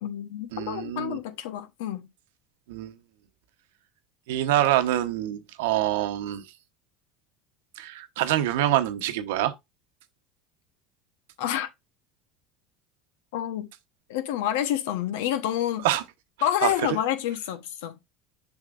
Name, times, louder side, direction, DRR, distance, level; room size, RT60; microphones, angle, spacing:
voice 1, 0.0-2.1 11.4-11.7 13.3-13.7 14.1-15.9 16.4-18.0, left 11 dB, 85° left, 1.0 m, -28 dB
voice 2, 0.5-1.2 2.7-2.9 4.3-6.4 7.8-9.5 15.8-16.0 16.6-16.7, right 13 dB, 85° right, 1.0 m, -25 dB
7.2 x 5.8 x 2.5 m
supercardioid pair, 120°, 0 cm